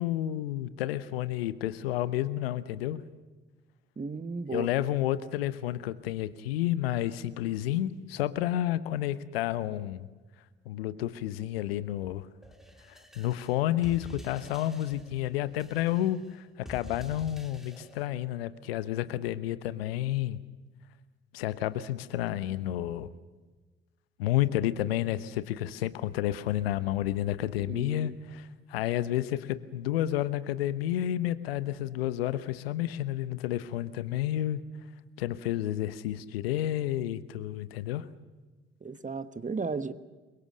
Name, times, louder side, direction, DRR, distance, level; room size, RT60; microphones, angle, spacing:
voice 1, 0.0-3.0 4.5-10.1 10.6-12.3 12.9-20.4 21.3-23.1 24.2-34.6 35.2-38.1, left 13 dB, 75° left, 15 dB, 1.1 m, -30 dB
voice 2, 4.0-4.7 27.7-28.1 38.8-39.9, right 4 dB, 25° right, 12 dB, 1.5 m, -35 dB
sound 1, 12.4-18.1, equal, ahead, 3.5 m, -48 dB
29.0 x 23.5 x 6.5 m, 1.3 s
figure-of-eight pair, 45°, 30 cm